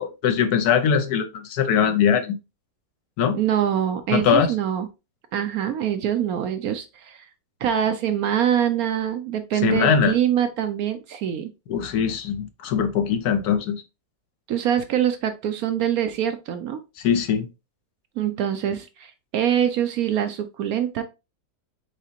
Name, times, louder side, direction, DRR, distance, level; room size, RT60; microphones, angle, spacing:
voice 1, 0.0-2.4 3.2-3.4 4.1-4.5 9.6-10.1 11.7-13.8 17.0-17.5, left 7 dB, 70° left, 1.1 m, -21 dB
voice 2, 3.3-4.9 5.3-7.3 7.6-11.5 14.5-16.8 18.2-21.0, right 10 dB, 70° right, 0.9 m, -24 dB
4.9 x 3.9 x 2.8 m
omnidirectional pair, 1.8 m